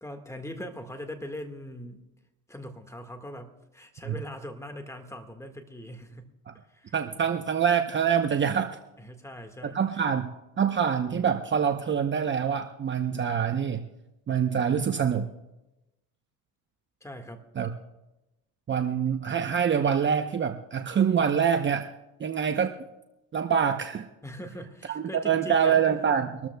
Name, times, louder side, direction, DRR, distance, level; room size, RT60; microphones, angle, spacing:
voice 1, 0.0-2.0 2.5-6.3 6.7-7.0 9.0-9.8 17.0-17.4 24.2-25.8, equal, 10° left, 6 dB, 1.7 m, -41 dB
voice 2, 6.9-8.8 9.7-10.3 10.6-13.8 14.3-15.2 17.6-17.7 18.7-21.9 22.2-22.7 23.3-24.1 24.9-26.5, right 7 dB, 30° right, 6 dB, 0.8 m, -25 dB
25.0 x 13.5 x 2.3 m, 0.98 s
supercardioid pair, 95°, 38 cm